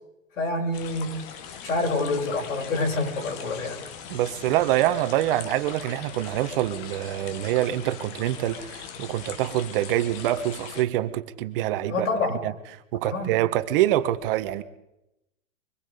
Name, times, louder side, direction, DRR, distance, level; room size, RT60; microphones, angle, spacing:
voice 1, 0.4-1.2 1.6-3.8 11.9-12.4 13.0-13.3, left 2 dB, 75° left, -2 dB, 7.4 m, -27 dB
sound 1, 0.7-10.8, left 8 dB, 35° left, 1.7 m, -41 dB
voice 2, 4.1-12.1 12.4-12.5 12.9-14.6, right 13 dB, 40° right, 11 dB, 1.4 m, -25 dB
24.5 x 20.5 x 5.2 m, 0.88 s
hypercardioid pair, 135°, 40 cm